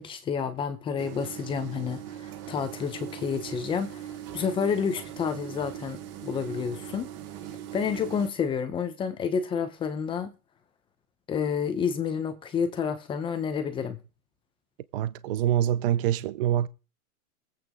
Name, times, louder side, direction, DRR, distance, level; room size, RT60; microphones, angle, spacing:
voice 1, 0.0-7.1 7.7-10.3 11.3-14.0, left 6 dB, 10° left, 0.8 m, -30 dB
sound 1, 1.0-8.3, right 11 dB, 25° right, 1.2 m, -40 dB
voice 2, 14.9-16.7, right 11 dB, 40° right, 0.5 m, -25 dB
21.0 x 8.6 x 3.8 m
supercardioid pair, 160°, 44 cm